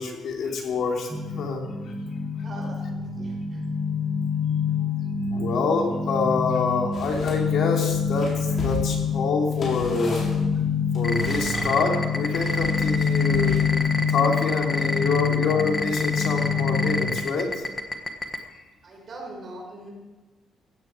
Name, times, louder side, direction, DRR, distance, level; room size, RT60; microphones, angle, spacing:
voice 1, 0.0-1.6 5.3-10.2 10.9-13.6 14.1-17.5, left 4 dB, 65° left, 1 dB, 3.1 m, -26 dB
sound 1, 1.1-17.2, left 5 dB, 10° right, 2.0 m, -26 dB
voice 2, 2.4-3.6 18.8-19.9, right 2 dB, 40° right, 0 dB, 4.9 m, -42 dB
sound 2, 6.9-7.4 7.8-11.7 12.3-13.9, left 1 dB, 45° left, 5.9 m, -36 dB
sound 3, 11.0-18.4, left 2 dB, 20° left, 1.4 m, -27 dB
16.5 x 14.0 x 4.7 m, 1.2 s
cardioid pair, 155°, 0 cm